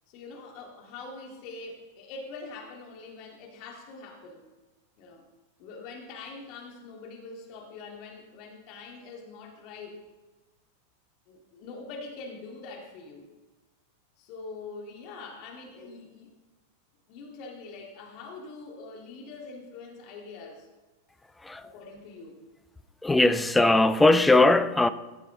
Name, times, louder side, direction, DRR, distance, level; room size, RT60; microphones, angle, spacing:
voice 1, 0.1-4.4 5.0-5.2 5.6-10.0 11.3-13.3 14.2-16.3 17.1-20.7 21.6-22.4, left 3 dB, 40° left, 2.1 m, -43 dB
voice 2, 21.4-21.7 23.0-24.9, left 2 dB, 10° left, 0.5 m, -20 dB
15.0 x 7.0 x 3.8 m
figure-of-eight pair, 90°, 0 cm